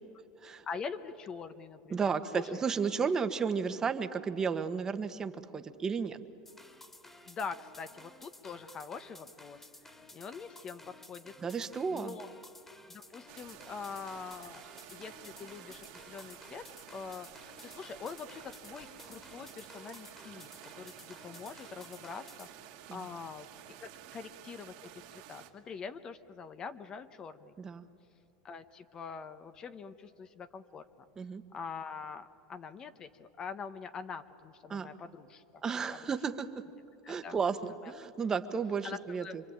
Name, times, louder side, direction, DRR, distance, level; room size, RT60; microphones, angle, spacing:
voice 1, 0.6-2.5 7.3-11.3 11.9-12.3 12.9-16.6 16.9-23.5 23.8-27.5 28.4-30.9 31.5-35.6 37.0-37.4 37.7-37.9 38.8-39.4, left 5 dB, 30° left, 10 dB, 1.2 m, -44 dB
voice 2, 1.9-6.2 11.4-12.2 22.9-23.1 27.6-27.9 31.2-31.4 34.7-34.9 35.6-36.5 37.1-39.4, right 5 dB, 25° right, 9 dB, 1.4 m, -33 dB
sound 1, 6.5-22.5, left 1 dB, 10° left, 2.3 m, -54 dB
sound 2, 13.3-25.5, right 12 dB, 60° right, 2.4 m, -52 dB
26.0 x 24.5 x 8.9 m, 2.7 s
supercardioid pair, 115°, 3 cm